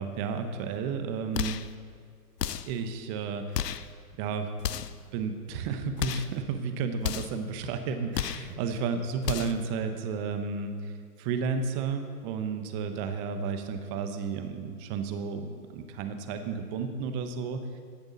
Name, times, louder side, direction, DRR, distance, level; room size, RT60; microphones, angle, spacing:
voice 1, 0.0-1.6 2.7-3.7 4.2-4.8 5.1-10.9 11.2-17.8, right 5 dB, 25° right, 7 dB, 1.1 m, -32 dB
sound 1, 1.3-1.7 2.4-2.8 3.5-3.9 4.6-5.0 6.0-6.4 7.0-7.4 8.1-8.5 9.2-9.7, left 10 dB, 85° left, 0.7 m, -33 dB
16.0 x 10.5 x 4.1 m, 2.1 s
hypercardioid pair, 130°, 47 cm